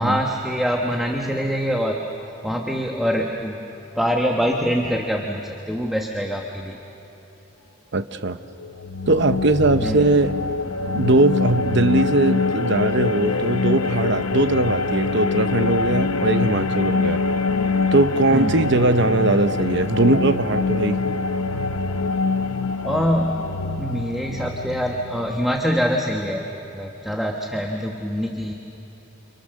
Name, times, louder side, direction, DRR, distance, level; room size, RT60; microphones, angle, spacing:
voice 1, 0.0-2.0 2.4-3.6 3.9-6.8 9.8-10.0 18.3-18.5 22.8-23.5 23.8-26.5 26.7-28.5, equal, ahead, 0 dB, 1.1 m, -24 dB
voice 2, 7.9-8.4 9.1-10.4 10.9-17.2 17.9-21.0, right 2 dB, 55° right, 10 dB, 0.9 m, -20 dB
sound 1, 8.6-25.9, left 3 dB, 90° left, 0.9 m, -24 dB
30.0 x 27.5 x 6.5 m, 3.0 s
head